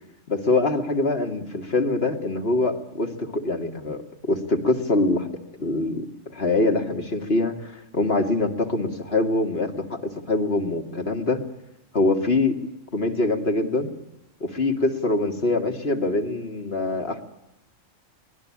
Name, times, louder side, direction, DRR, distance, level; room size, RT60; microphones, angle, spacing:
voice 1, 0.3-5.3 5.6-6.1 6.3-11.4 11.9-12.6 12.9-13.9 14.4-17.2, left 2 dB, 50° left, 4 dB, 2.4 m, -24 dB
23.5 x 19.0 x 8.6 m, 0.91 s
omnidirectional pair, 1.4 m